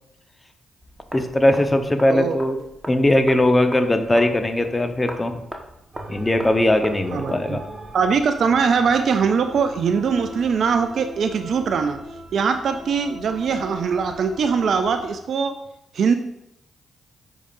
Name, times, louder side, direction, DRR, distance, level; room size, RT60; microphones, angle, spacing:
sound 1, 0.8-7.4, right 1 dB, 10° right, 1.3 m, -39 dB
voice 1, 1.1-5.3 6.1-7.6, left 1 dB, 25° left, 7 dB, 0.9 m, -19 dB
sound 2, 5.9-15.1, equal, 45° right, 2.5 m, -39 dB
voice 2, 7.1-7.6 7.9-12.0 12.3-15.6 15.9-16.1, right 6 dB, 65° right, 8 dB, 0.4 m, -21 dB
9.9 x 4.9 x 2.6 m, 0.83 s
hypercardioid pair, 45°, 0 cm